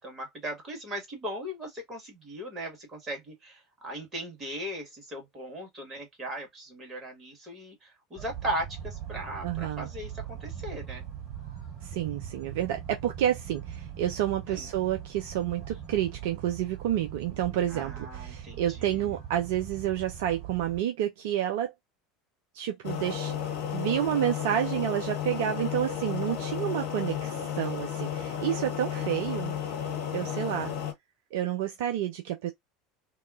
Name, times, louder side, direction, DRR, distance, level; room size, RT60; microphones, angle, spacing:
voice 1, 0.0-11.0 14.5-14.7 17.7-19.1 30.1-30.9, right 1 dB, 30° right, 1.7 m, -38 dB
sound 1, 8.2-20.8, right 9 dB, 45° right, 1.8 m, -41 dB
voice 2, 9.4-9.9 11.8-21.7 22.5-23.3 23.7-29.5 30.1-30.7 31.3-32.5, right 11 dB, 60° right, 0.4 m, -29 dB
sound 2, 22.8-30.9, left 9 dB, 60° left, 0.8 m, -33 dB
2.9 x 2.2 x 2.4 m
figure-of-eight pair, 70°, 0 cm